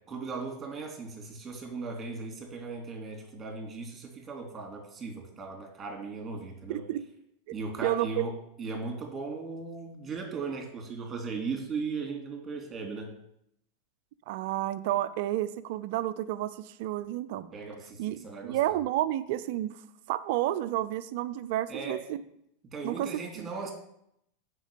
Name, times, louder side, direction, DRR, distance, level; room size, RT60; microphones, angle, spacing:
voice 1, 0.1-6.8 7.5-8.3 8.6-13.1 17.5-18.6 21.7-22.0 22.6-23.7, right 4 dB, 25° right, 3 dB, 2.6 m, -37 dB
voice 2, 6.7-7.0 7.8-8.3 14.3-17.5 18.0-19.8 20.1-22.2 22.8-23.5, right 14 dB, 60° right, 14 dB, 0.5 m, -31 dB
6.3 x 5.3 x 6.9 m, 0.75 s
hypercardioid pair, 90°, 0 cm